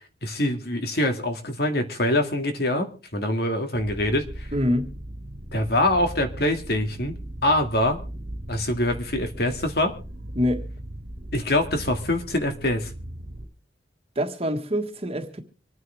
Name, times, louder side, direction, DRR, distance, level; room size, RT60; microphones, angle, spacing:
voice 1, 0.2-4.5 5.5-7.2 7.4-8.0 8.5-9.9 11.3-12.9, left 1 dB, 60° left, 2.2 m, -24 dB
sound 1, 3.7-13.5, right 1 dB, 80° right, 1.8 m, -38 dB
voice 2, 4.5-5.0 10.3-10.7 14.1-15.4, equal, 35° right, 1.6 m, -25 dB
26.0 x 9.5 x 3.4 m
head